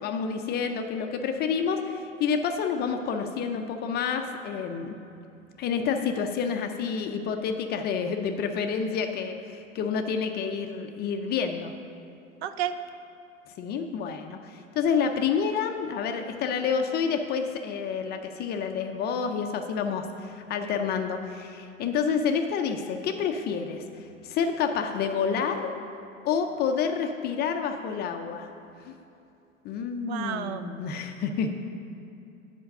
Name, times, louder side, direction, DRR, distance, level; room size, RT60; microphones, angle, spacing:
voice 1, 0.0-4.9 5.6-11.7 13.6-23.8 24.2-25.7 26.2-28.5 28.8-29.0 29.6-31.5, left 6 dB, 25° left, 5 dB, 0.5 m, -29 dB
voice 2, 12.4-12.8 30.1-30.6, right 10 dB, 55° right, 11 dB, 0.5 m, -31 dB
7.8 x 5.1 x 6.5 m, 2.7 s
hypercardioid pair, 105°, 39 cm